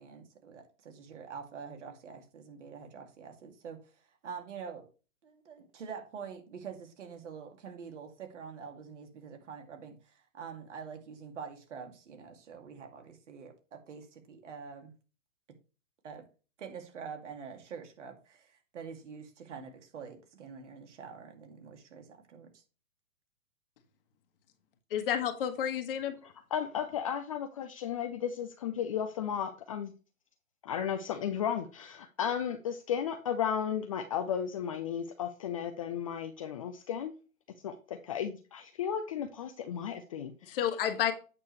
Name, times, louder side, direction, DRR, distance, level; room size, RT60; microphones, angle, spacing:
voice 1, 0.0-4.9 5.2-14.9 16.0-16.3 16.6-22.6, right 6 dB, 55° right, 2.4 m, -46 dB
voice 2, 24.9-26.2 40.4-41.1, left 9 dB, 40° left, 1.4 m, -30 dB
voice 3, 26.5-29.9 30.6-37.1 37.6-40.6, left 8 dB, 25° left, 0.5 m, -34 dB
8.7 x 6.6 x 3.2 m
figure-of-eight pair, 130°, 42 cm